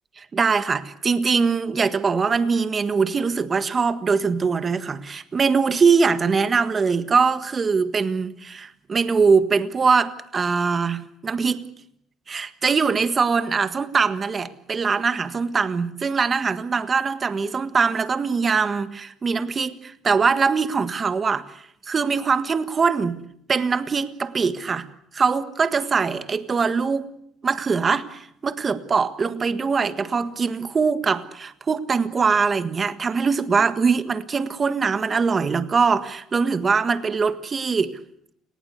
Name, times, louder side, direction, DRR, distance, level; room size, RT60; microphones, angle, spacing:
voice 1, 0.2-11.6 12.3-21.4 21.9-23.2 23.5-24.9 25.1-27.1 27.4-38.0, right 5 dB, 30° right, 11 dB, 1.6 m, -22 dB
30.0 x 19.0 x 8.2 m, 0.73 s
cardioid pair, 110°, 0 cm